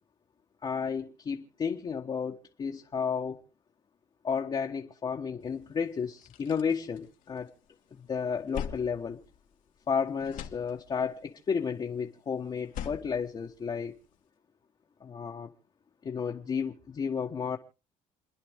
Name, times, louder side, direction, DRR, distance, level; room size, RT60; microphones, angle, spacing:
voice 1, 0.6-3.4 4.2-7.5 8.1-9.2 9.9-13.9 15.0-15.5 16.0-17.6, left 6 dB, 35° left, 1.3 m, -32 dB
sound 1, 5.5-5.6 6.0-7.7 8.0-9.9 10.2-11.2 12.5-14.2, left 9 dB, 65° left, 1.6 m, -43 dB
28.5 x 10.5 x 3.6 m
cardioid pair, 115°, 14 cm